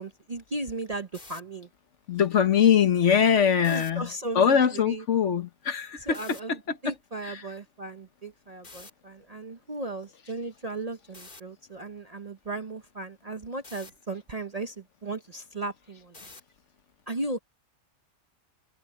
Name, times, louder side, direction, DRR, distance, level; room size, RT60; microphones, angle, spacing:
voice 1, 0.0-1.7 3.7-5.0 6.0-16.3 17.1-17.4, right 2 dB, 35° right, 0.7 m, -36 dB
sound 1, 1.0-1.4 3.6-3.9 6.1-6.4 8.6-8.9 11.1-11.4 13.6-13.9 16.1-16.5, left 3 dB, 35° left, 2.5 m, -47 dB
voice 2, 2.1-4.1 4.3-6.2 7.2-7.4, left 8 dB, 60° left, 1.3 m, -22 dB
omnidirectional pair, 1.5 m